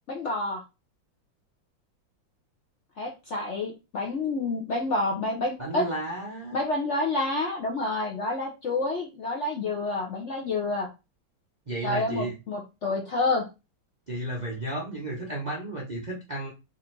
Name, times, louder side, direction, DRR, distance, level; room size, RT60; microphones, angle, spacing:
voice 1, 0.1-0.6 3.0-5.9 6.5-10.9 11.8-13.4, left 2 dB, 55° left, 0 dB, 0.8 m, -28 dB
voice 2, 5.6-6.6 11.7-12.4 14.1-16.5, right 1 dB, 40° right, -3 dB, 0.6 m, -33 dB
3.6 x 2.6 x 4.4 m, 0.27 s
omnidirectional pair, 2.0 m